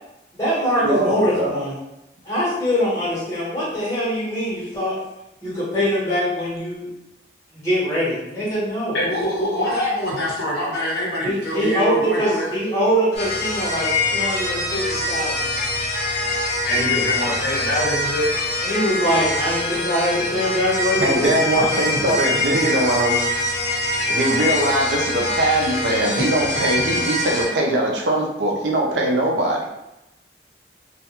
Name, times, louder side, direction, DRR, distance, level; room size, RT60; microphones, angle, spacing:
voice 1, 0.3-1.8 2.2-5.0 5.4-6.9 7.5-9.0 11.2-15.4 18.6-21.8 22.1-22.2, equal, 15° left, -9 dB, 1.1 m, -23 dB
voice 2, 0.8-1.6 9.5-9.6 21.0-23.2 24.1-29.7, right 1 dB, 75° right, -1 dB, 0.5 m, -21 dB
voice 3, 8.9-12.5 16.6-18.3, left 1 dB, 65° left, -6 dB, 0.9 m, -24 dB
sound 1, 13.1-27.5, left 2 dB, 40° left, 0.9 m, -24 dB
2.3 x 2.1 x 2.9 m, 0.91 s
head